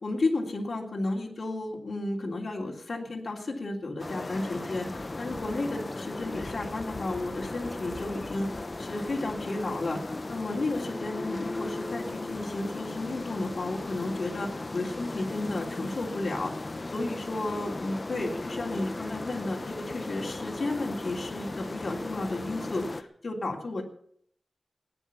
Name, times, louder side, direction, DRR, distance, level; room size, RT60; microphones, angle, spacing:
voice 1, 0.0-23.8, left 2 dB, 65° left, -2 dB, 3.3 m, -33 dB
sound 1, 4.0-23.0, left 2 dB, 40° left, 0.9 m, -37 dB
18.0 x 10.5 x 7.1 m, 0.64 s
wide cardioid pair, 95°, 0 cm